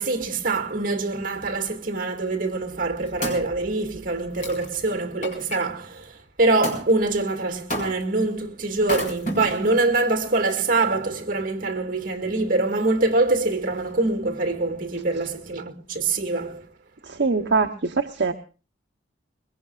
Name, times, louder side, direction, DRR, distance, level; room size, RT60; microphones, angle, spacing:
voice 1, 0.0-16.7, right 2 dB, 45° right, 2.1 m, -24 dB
Wood, 2.6-5.6 6.6-6.9 7.7-8.2 8.8-9.8 10.4-10.5, right 1 dB, 45° left, 5.2 m, -32 dB
voice 2, 17.0-18.3, right 4 dB, 60° right, 0.9 m, -23 dB
22.5 x 21.5 x 2.4 m
head